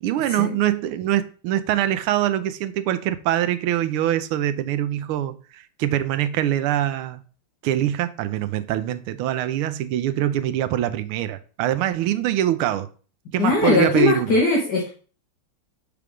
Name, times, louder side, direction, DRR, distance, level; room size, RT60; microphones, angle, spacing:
voice 1, 0.0-7.2 7.6-12.9 13.3-14.4, right 12 dB, 80° right, 1.5 m, -24 dB
voice 2, 13.4-14.9, left 3 dB, 55° left, 1.7 m, -20 dB
6.8 x 3.4 x 6.1 m
omnidirectional pair, 2.4 m